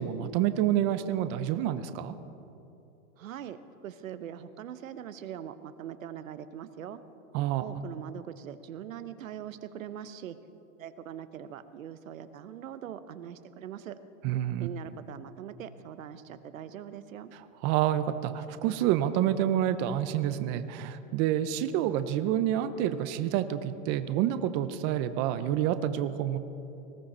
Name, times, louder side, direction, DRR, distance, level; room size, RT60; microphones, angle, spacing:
voice 1, 0.0-2.1 7.3-7.6 14.2-14.7 17.6-26.4, right 11 dB, 25° right, 12 dB, 0.4 m, -28 dB
voice 2, 3.2-7.0 7.6-10.4 10.8-14.0 14.6-17.3, right 10 dB, 90° right, 12 dB, 0.9 m, -42 dB
19.5 x 14.0 x 4.3 m, 2.8 s
hypercardioid pair, 140°, 39 cm